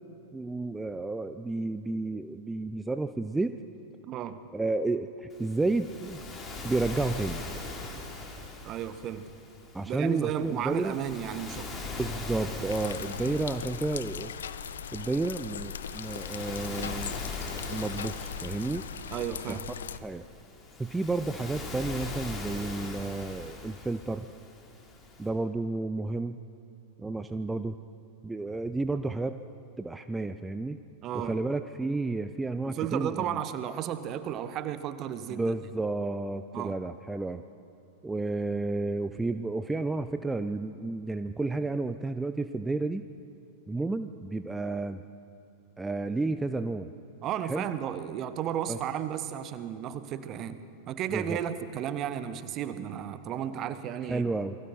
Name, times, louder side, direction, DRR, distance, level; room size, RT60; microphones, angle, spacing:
voice 1, 0.3-3.6 4.5-6.2 6.6-7.4 9.7-11.0 12.0-14.3 14.9-17.2 17.7-18.8 19.5-19.6 20.0-20.2 20.8-24.3 25.2-26.4 27.0-27.8 28.2-29.4 29.8-30.8 31.1-33.4 35.3-37.4 38.0-43.0 43.7-45.0 45.8-46.9 47.4-47.7 48.7-48.8 51.1-51.4 54.1-54.6, right 3 dB, 10° right, 10 dB, 0.6 m, -31 dB
voice 2, 4.0-4.4 8.6-9.3 9.9-11.7 19.1-19.7 31.0-31.4 32.6-35.5 36.5-36.7 47.2-50.6 50.9-54.3, right 10 dB, 35° right, 12 dB, 1.1 m, -33 dB
Waves surf, 5.3-25.3, left 3 dB, 25° left, 3.5 m, -41 dB
sound 1, 12.7-20.0, left 7 dB, 65° left, 0.7 m, -39 dB
28.0 x 21.0 x 4.5 m, 2.8 s
figure-of-eight pair, 90°, 0 cm